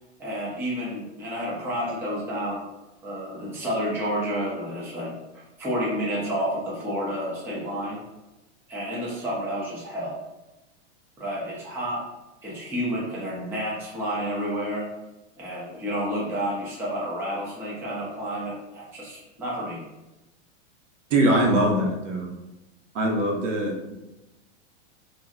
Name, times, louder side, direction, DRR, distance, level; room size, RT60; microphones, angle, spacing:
voice 1, 0.2-2.6 3.0-5.2 5.6-8.0 8.7-10.2 11.2-12.0 12.4-14.9 15.4-19.8, equal, 5° right, -7 dB, 0.5 m, -30 dB
voice 2, 21.1-22.3 22.9-23.9, right 1 dB, 90° right, 1 dB, 0.9 m, -22 dB
2.7 x 2.1 x 3.5 m, 0.99 s
supercardioid pair, 155°, 36 cm